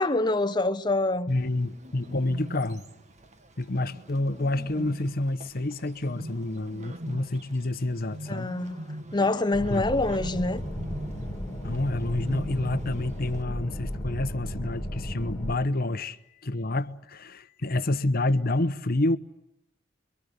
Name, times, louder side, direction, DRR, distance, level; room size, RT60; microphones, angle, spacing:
voice 1, 0.0-1.3 8.3-8.9 9.1-10.6, left 2 dB, 25° left, 1.2 m, -25 dB
voice 2, 1.3-2.8 3.6-8.5 9.7-10.1 11.6-16.2 16.4-19.2, left 2 dB, 55° left, 1.1 m, -28 dB
Bird, 1.3-13.4, equal, 40° right, 1.7 m, -43 dB
sound 1, 9.5-15.6, equal, 5° left, 4.0 m, -34 dB
28.0 x 23.5 x 8.2 m
head